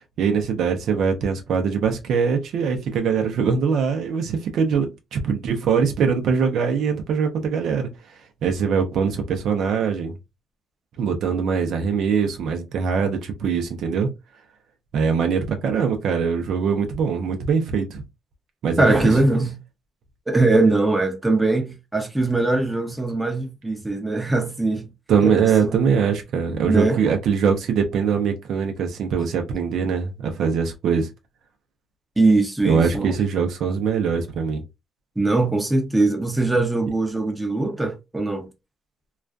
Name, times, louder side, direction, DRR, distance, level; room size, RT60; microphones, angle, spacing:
voice 1, 0.2-7.9 8.4-10.1 11.0-14.1 14.9-18.0 18.6-18.9 25.1-31.1 32.6-34.6, right 6 dB, 75° right, 0.5 m, -22 dB
voice 2, 18.8-19.5 20.3-24.9 25.2-25.7 26.7-27.0 32.2-33.2 35.2-38.5, right 2 dB, 10° right, 0.7 m, -21 dB
2.3 x 2.2 x 2.4 m
cardioid pair, 90°, 0 cm